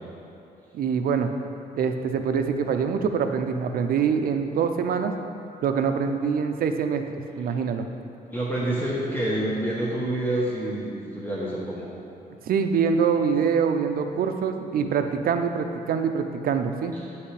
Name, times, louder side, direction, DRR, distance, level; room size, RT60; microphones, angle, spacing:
voice 1, 0.7-1.3 1.8-5.1 5.6-7.1 7.4-7.9 12.5-16.9, right 6 dB, 65° right, 6 dB, 0.5 m, -24 dB
voice 2, 8.3-11.9, right 1 dB, 10° left, -6 dB, 0.8 m, -27 dB
8.5 x 5.7 x 3.3 m, 2.7 s
wide cardioid pair, 160°, 16 cm